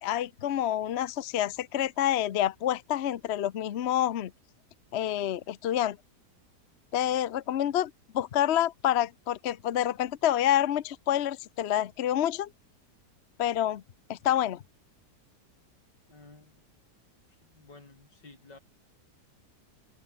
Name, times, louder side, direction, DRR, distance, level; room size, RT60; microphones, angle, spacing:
voice 1, 0.0-4.3 4.9-6.0 6.9-12.5 13.4-13.8 14.1-14.6, left 11 dB, 55° left, 0.8 m, -28 dB
voice 2, 16.1-16.6 17.3-18.6, left 3 dB, 85° left, 6.0 m, -53 dB
omnidirectional pair, 1.8 m